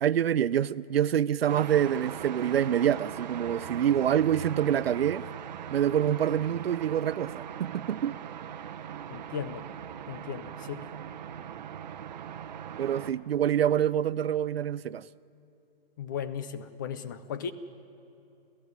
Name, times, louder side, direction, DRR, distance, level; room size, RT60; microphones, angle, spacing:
voice 1, 0.0-5.3 5.7-8.2 12.8-15.0, right 10 dB, 85° right, 19 dB, 0.6 m, -26 dB
sound 1, 1.5-13.1, right 9 dB, 45° right, 1.0 m, -40 dB
voice 2, 9.1-9.7 10.1-10.9 16.0-17.5, left 8 dB, 20° left, 13 dB, 0.5 m, -36 dB
29.0 x 15.0 x 9.6 m, 2.8 s
hypercardioid pair, 165°, 29 cm